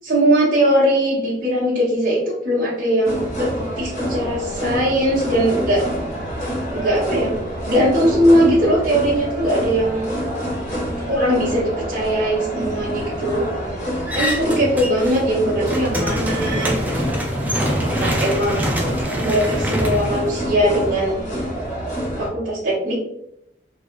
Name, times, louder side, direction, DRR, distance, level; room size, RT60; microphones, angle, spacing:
voice 1, 0.0-5.8 6.7-7.3 7.6-10.1 11.1-13.5 14.1-16.7 18.0-18.6 19.2-21.2 22.2-23.0, right 1 dB, 50° right, -8 dB, 0.9 m, -20 dB
sound 1, 3.0-22.3, equal, 40° left, 1.4 m, -27 dB
sound 2, 14.1-15.2 15.5-20.9, equal, 10° right, 0.4 m, -24 dB
3.1 x 2.7 x 2.4 m, 0.81 s
head